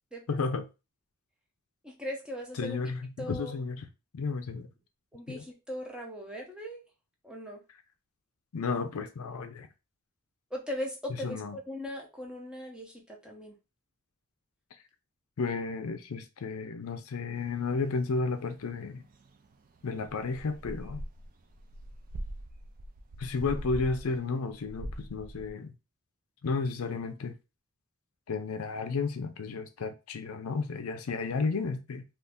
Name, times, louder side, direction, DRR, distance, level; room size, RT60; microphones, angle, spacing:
voice 1, 0.3-0.7 2.6-3.9 4.1-4.7 5.3-5.4 8.5-9.7 11.2-11.6 15.4-19.0 19.8-21.0 23.2-25.7 26.4-27.3 28.3-32.0, left 4 dB, 75° left, 0.5 m, -32 dB
voice 2, 1.8-2.8 3.2-3.5 5.1-6.8 7.2-7.6 10.5-13.6, left 1 dB, 5° right, 0.6 m, -39 dB
sound 1, 17.4-24.2 24.5-25.5, right 1 dB, 40° right, 0.4 m, -43 dB
2.6 x 2.5 x 3.5 m
head